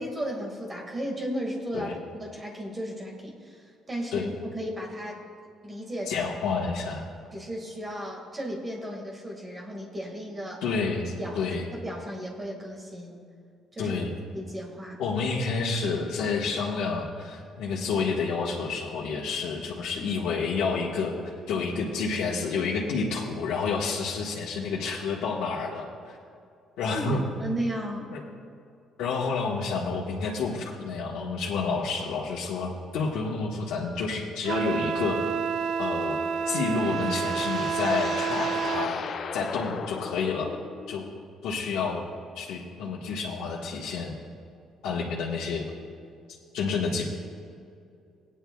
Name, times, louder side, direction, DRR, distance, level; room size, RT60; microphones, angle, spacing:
voice 1, 0.0-5.2 5.6-6.3 7.3-10.6 11.2-13.2 13.7-15.0 26.9-28.1, equal, 20° right, -1 dB, 1.9 m, -35 dB
voice 2, 6.1-7.0 10.6-11.7 13.8-14.1 15.0-26.2 26.8-27.2 28.1-28.2 29.0-35.2 35.8-36.2 36.4-39.0 39.3-40.6 40.9-41.1 41.4-42.0 42.3-44.1 44.8-45.7 46.5-47.1, left 4 dB, 85° left, -4 dB, 1.4 m, -29 dB
Wind instrument woodwind instrument, 34.5-38.9, right 6 dB, 65° right, 0.4 m, -29 dB
sound 1, 36.1-41.2, left 6 dB, 40° left, 0.4 m, -37 dB
18.0 x 9.9 x 2.3 m, 2.4 s
cardioid pair, 155°, 0 cm